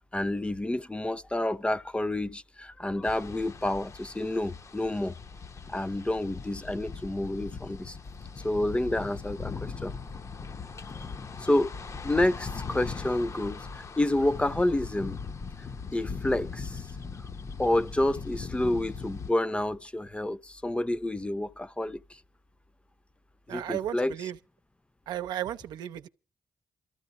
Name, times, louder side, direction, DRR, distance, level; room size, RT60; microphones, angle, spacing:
voice 1, 0.1-5.2 5.7-8.0 8.4-9.9 11.4-11.8 12.0-15.2 15.9-16.9 17.6-22.2 23.5-24.1, left 1 dB, 15° left, 0.7 m, -29 dB
sound 1, 3.0-19.3, left 5 dB, 45° left, 0.8 m, -40 dB
voice 2, 23.5-24.4 25.1-26.1, right 11 dB, 85° right, 0.7 m, -34 dB
27.5 x 13.5 x 2.6 m
supercardioid pair, 60°, 7 cm